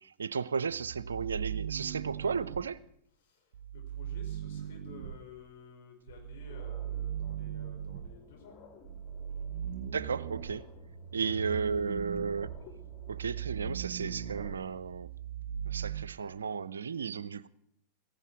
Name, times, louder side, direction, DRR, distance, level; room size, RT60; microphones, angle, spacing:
voice 1, 0.0-2.8 9.9-10.7 11.1-12.5 13.1-15.1 15.7-17.5, right 5 dB, 70° right, 0.5 m, -34 dB
sound 1, 0.7-2.6 3.5-5.2 6.1-8.1 8.8-16.1, right 9 dB, 50° right, 1.4 m, -39 dB
voice 2, 3.2-8.6 11.2-11.4, left 6 dB, 60° left, 5.2 m, -53 dB
sound 2, 6.0-14.8, left 4 dB, 35° left, 2.8 m, -56 dB
16.5 x 15.5 x 4.8 m
figure-of-eight pair, 90°, 0 cm